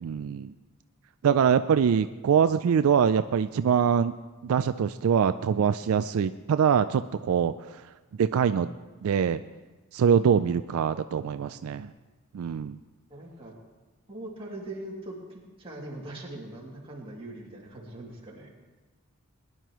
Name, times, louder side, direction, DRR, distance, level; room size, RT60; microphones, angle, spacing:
voice 1, 0.0-0.5 1.2-4.1 4.4-7.8 8.2-8.7 9.0-9.4 9.9-11.9 12.3-12.8, right 7 dB, 75° right, 11 dB, 0.3 m, -24 dB
voice 2, 11.3-11.9 13.1-13.5 14.1-18.5, right 1 dB, 25° right, -4 dB, 2.4 m, -41 dB
20.0 x 11.0 x 3.0 m, 1.2 s
head